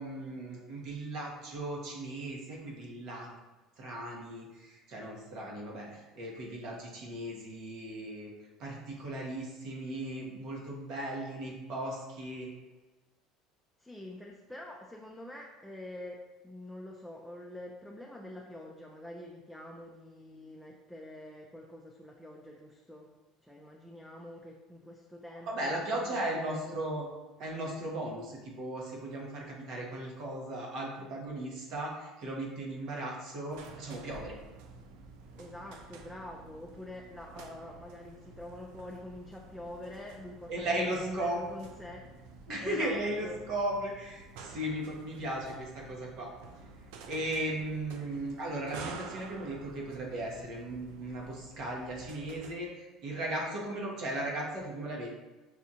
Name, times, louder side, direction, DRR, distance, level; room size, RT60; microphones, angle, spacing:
voice 1, 0.0-3.4 3.8-8.3 8.6-12.5 25.5-27.1 27.4-34.4 40.5-41.4 42.5-46.3 47.1-55.1, right 1 dB, 60° right, -2 dB, 1.2 m, -36 dB
voice 2, 13.8-23.1 23.4-26.8 35.4-42.1 42.6-43.4, left 1 dB, ahead, -2 dB, 0.5 m, -46 dB
sound 1, 33.5-52.6, right 4 dB, 75° right, 0.4 m, -50 dB
6.2 x 2.4 x 2.8 m, 1.2 s
supercardioid pair, 100°, 0 cm